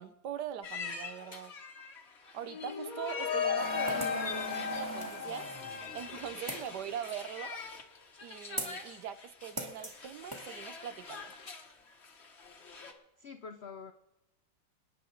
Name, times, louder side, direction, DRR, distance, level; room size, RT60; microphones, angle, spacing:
voice 1, 0.0-1.5 2.3-4.0 4.7-5.5 5.9-7.6 8.2-11.3, right 9 dB, 70° right, 11 dB, 1.2 m, -42 dB
sound 1, 0.6-12.9, left 4 dB, 40° left, 1.3 m, -45 dB
sound 2, 2.5-6.4, left 6 dB, 60° left, 1.2 m, -35 dB
sound 3, 3.6-6.8 8.6-8.9 9.6-10.0 10.3-10.5, right 1 dB, 10° right, 1.6 m, -41 dB
voice 2, 3.9-4.7 12.9-13.9, left 5 dB, 80° left, 8 dB, 0.5 m, -45 dB
27.5 x 9.5 x 3.9 m, 0.95 s
omnidirectional pair, 2.0 m